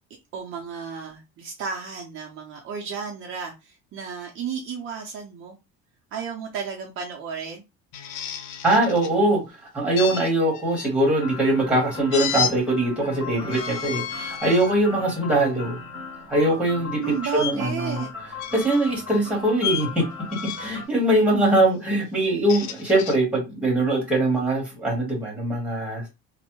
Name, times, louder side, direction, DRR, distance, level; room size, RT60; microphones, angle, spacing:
voice 1, 0.3-5.6 6.1-7.6 17.0-18.1, right 7 dB, 45° right, 2 dB, 0.5 m, -33 dB
sound 1, 7.9-9.1 10.0-10.9 12.1-12.5 13.4-14.7 15.3-15.6 17.3-17.5 18.4-18.9 19.6-19.9 20.3-20.8 22.2-23.2, left 9 dB, 85° left, 0.6 m, -31 dB
voice 2, 8.6-9.4 9.7-15.8 16.3-17.0 17.3-18.0 18.5-20.1 20.4-26.0, right 1 dB, 5° right, -3 dB, 1.0 m, -22 dB
sound 2, 11.1-20.9, left 4 dB, 40° left, 1.3 m, -38 dB
3.1 x 2.0 x 2.9 m, 0.25 s
cardioid pair, 180°, 30 cm